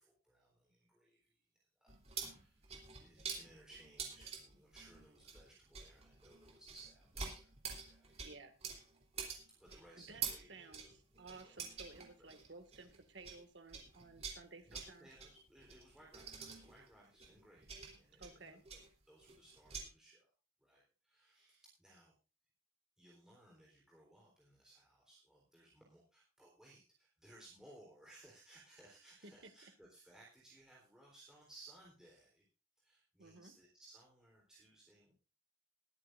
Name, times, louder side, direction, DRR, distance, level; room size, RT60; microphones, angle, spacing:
voice 1, 0.0-1.3 1.8-2.6 3.0-8.2 9.6-10.9 11.3-11.6 12.2-12.3 14.7-20.3 20.6-22.1 23.0-32.5 32.8-35.1, right 2 dB, 5° right, -4 dB, 3.8 m, -62 dB
sound 1, 1.9-13.4 13.7-19.9, right 6 dB, 35° right, 3.3 m, -48 dB
voice 2, 8.2-8.6 9.7-15.1 18.2-18.6 29.2-29.3 33.2-33.5, right 3 dB, 65° right, 7 dB, 2.0 m, -56 dB
21.5 x 10.0 x 2.6 m, 0.33 s
head